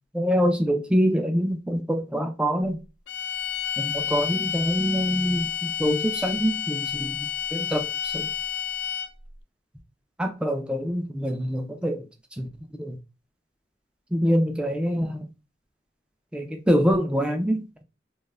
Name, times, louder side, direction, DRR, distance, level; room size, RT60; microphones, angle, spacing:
voice 1, 0.1-2.8 3.8-8.3 10.2-12.0 12.4-12.5 12.8-13.0 14.1-15.3 16.3-17.8, equal, 5° right, 0.3 m, -25 dB
sound 1, 3.1-9.3, left 9 dB, 75° left, 0.4 m, -30 dB
2.2 x 2.1 x 3.1 m
head